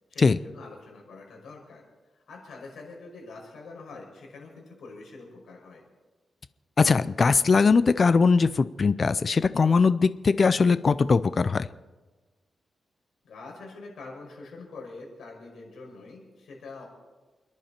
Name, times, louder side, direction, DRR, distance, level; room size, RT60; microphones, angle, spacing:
voice 1, 0.1-1.8 2.1-5.8 13.2-16.9, left 3 dB, 75° left, -1 dB, 5.9 m, -45 dB
voice 2, 6.8-11.7, left 4 dB, 35° left, 14 dB, 0.5 m, -21 dB
29.0 x 11.0 x 4.4 m, 1.3 s
wide cardioid pair, 150°, 0 cm